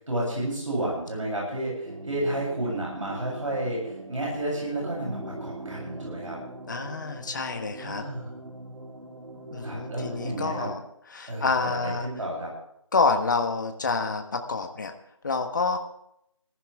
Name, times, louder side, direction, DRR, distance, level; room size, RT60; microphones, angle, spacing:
voice 1, 0.0-6.4 7.8-8.3 9.6-10.7 11.3-12.5, right 1 dB, 70° right, -3 dB, 7.8 m, -31 dB
sound 1, 1.8-10.8, right 2 dB, 85° right, 3.8 m, -41 dB
voice 2, 6.7-8.0 9.5-10.8 11.1-12.1 12.9-14.9 15.2-15.8, left 4 dB, 35° left, 5 dB, 1.3 m, -27 dB
21.0 x 14.5 x 3.6 m, 0.73 s
figure-of-eight pair, 170°, 17 cm